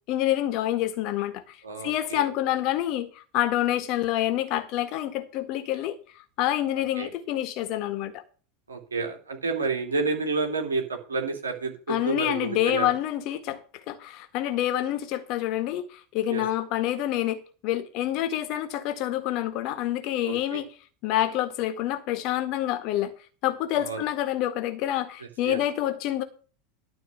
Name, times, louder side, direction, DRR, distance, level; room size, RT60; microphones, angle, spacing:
voice 1, 0.1-1.6 1.8-8.2 11.9-20.7 21.0-23.1 23.4-26.2, left 13 dB, 50° left, 1.8 m, -27 dB
voice 2, 1.6-2.2 7.0-7.1 8.7-12.9 16.3-16.4 20.2-20.6 23.7-24.0 25.4-25.6, right 4 dB, 80° right, 2.9 m, -30 dB
12.5 x 4.7 x 8.0 m
figure-of-eight pair, 85°, 0 cm